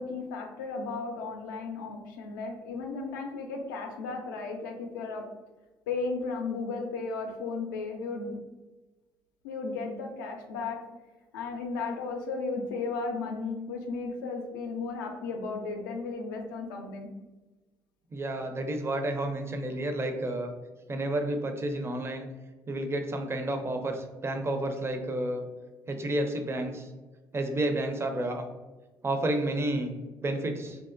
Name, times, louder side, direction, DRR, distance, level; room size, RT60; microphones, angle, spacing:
voice 1, 0.0-5.2 5.9-8.3 9.4-10.8 11.3-17.1, left 4 dB, 75° left, 3 dB, 0.4 m, -35 dB
voice 2, 18.1-20.5 20.9-22.3 22.7-25.5 25.9-26.9 27.3-28.5 29.0-29.9 30.2-30.8, right 1 dB, 25° right, 5 dB, 0.4 m, -30 dB
2.7 x 2.1 x 2.5 m, 1.2 s
figure-of-eight pair, 45°, 11 cm